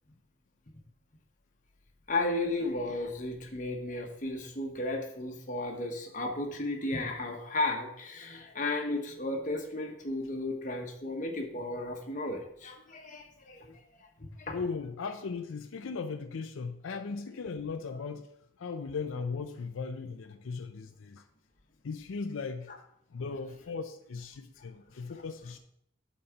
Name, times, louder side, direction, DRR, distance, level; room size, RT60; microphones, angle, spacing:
voice 1, 2.1-14.6, left 2 dB, 40° left, 2 dB, 1.1 m, -34 dB
voice 2, 14.5-18.3 18.6-21.2 21.8-22.7 23.1-25.6, left 4 dB, 80° left, 7 dB, 0.5 m, -37 dB
8.5 x 4.2 x 5.8 m, 0.76 s
head